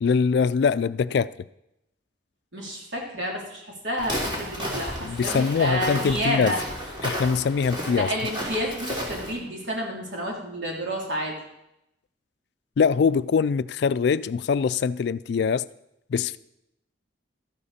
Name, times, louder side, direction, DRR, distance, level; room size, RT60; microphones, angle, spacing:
voice 1, 0.0-1.3 5.0-6.5 7.0-8.1 12.8-15.6 16.1-16.4, left 5 dB, 60° left, 0.3 m, -23 dB
voice 2, 2.5-6.6 7.9-11.4, equal, 75° right, 3.3 m, -30 dB
Walk footsteps, 4.0-9.3, equal, 25° right, 3.0 m, -32 dB
13.0 x 12.0 x 4.2 m
head